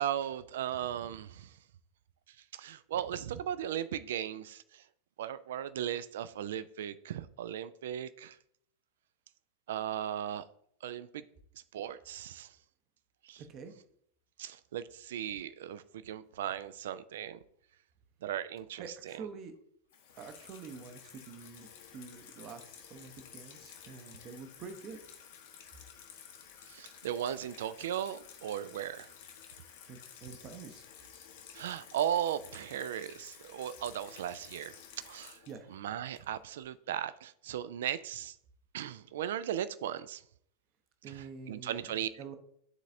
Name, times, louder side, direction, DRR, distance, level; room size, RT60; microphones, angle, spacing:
voice 1, 0.0-1.6 2.5-4.8 5.2-8.4 9.7-10.4 10.8-11.2 11.7-12.5 13.2-13.4 14.4-17.4 18.2-19.3 26.7-29.1 31.5-34.8 35.0-35.4 35.7-38.4 38.7-40.2 41.1-42.1, right 10 dB, 60° right, 0.3 m, -37 dB
voice 2, 13.4-13.7 18.8-19.5 20.2-25.0 29.9-30.8 35.5-35.7 41.0-41.9 42.2-42.4, right 5 dB, 35° right, 0.7 m, -47 dB
Water tap faucet / Sink (filling or washing), 19.9-36.6, left 8 dB, 55° left, 0.9 m, -53 dB
11.0 x 4.0 x 2.6 m
figure-of-eight pair, 90°, 0 cm